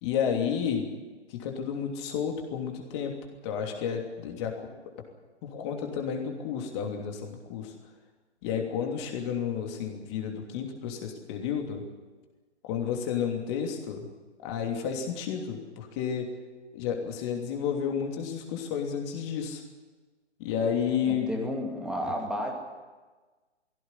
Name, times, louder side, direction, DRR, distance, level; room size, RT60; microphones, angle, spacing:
voice 1, 0.0-0.9 1.3-3.2 3.4-4.7 5.4-7.7 8.4-11.8 12.6-14.1 14.4-16.3 16.7-19.6 20.4-21.3, left 7 dB, 25° left, 2 dB, 3.0 m, -31 dB
voice 2, 21.1-22.5, equal, ahead, 1 dB, 2.4 m, -32 dB
19.5 x 16.5 x 9.9 m, 1.3 s
figure-of-eight pair, 140°, 35 cm